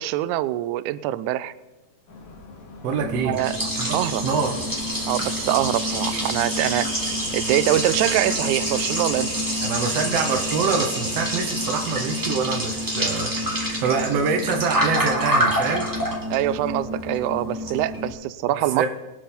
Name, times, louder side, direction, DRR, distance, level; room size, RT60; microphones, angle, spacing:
voice 1, 0.0-1.5 3.3-3.6 3.9-4.2 5.1-6.9 7.3-9.3 16.3-18.9, right 14 dB, 85° right, 16 dB, 1.7 m, -24 dB
sound 1, 2.1-10.4, left 3 dB, 65° left, 3.5 m, -44 dB
voice 2, 2.8-3.4 3.8-4.6 9.6-13.3 13.6-15.9 18.5-18.9, right 5 dB, 65° right, 3 dB, 1.6 m, -25 dB
Liquid, 3.0-18.1, equal, 5° right, 1.8 m, -27 dB
22.0 x 7.6 x 4.4 m, 1.1 s
omnidirectional pair, 4.1 m